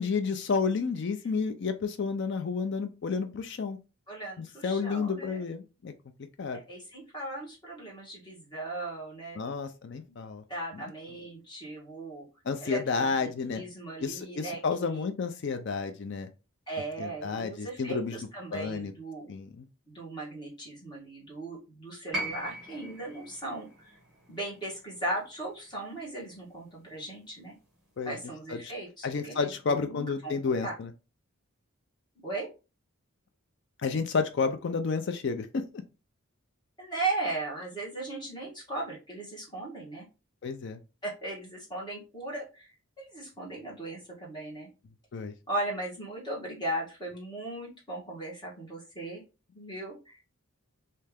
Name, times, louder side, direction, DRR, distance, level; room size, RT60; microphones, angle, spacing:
voice 1, 0.0-3.8 4.4-5.9 6.4-6.6 9.4-10.4 10.7-10.9 12.5-13.6 14.0-16.3 17.0-18.2 18.5-18.9 19.3-19.7 28.0-28.2 28.5-28.7 29.0-30.9 33.8-35.8 40.4-40.8 45.1-45.3, left 5 dB, 55° left, 8 dB, 0.4 m, -31 dB
voice 2, 4.1-5.4 6.5-9.4 10.1-10.2 10.5-12.2 12.6-13.1 13.5-15.1 16.7-19.3 19.9-23.9 24.3-27.5 28.0-30.3 30.6-30.7 32.1-32.5 36.8-40.1 41.0-44.7 45.5-49.2 49.5-50.2, right 2 dB, 20° left, -4 dB, 1.4 m, -37 dB
sound 1, 22.1-26.3 27.5-27.6, right 1 dB, 5° right, 1.4 m, -40 dB
3.2 x 2.8 x 3.4 m, 0.30 s
head